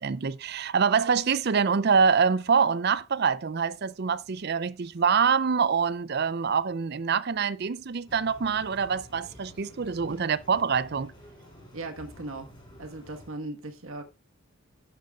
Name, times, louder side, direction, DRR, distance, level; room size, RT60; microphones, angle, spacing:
voice 1, 0.0-11.1, right 6 dB, 50° right, 0.5 m, -25 dB
sound 1, 8.1-13.3, equal, 20° left, 4.3 m, -50 dB
voice 2, 11.7-12.5 12.8-14.0, right 2 dB, 75° right, 1.5 m, -38 dB
11.5 x 10.5 x 2.4 m
head